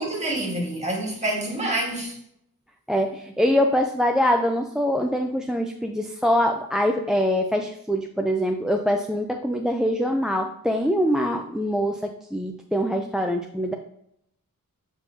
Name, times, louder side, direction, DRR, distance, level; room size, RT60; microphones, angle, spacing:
voice 1, 0.0-2.2, right 1 dB, 20° right, 2.3 m, -27 dB
voice 2, 2.9-13.7, equal, ahead, 0.5 m, -24 dB
7.9 x 5.4 x 2.8 m
wide cardioid pair, 90°, 35 cm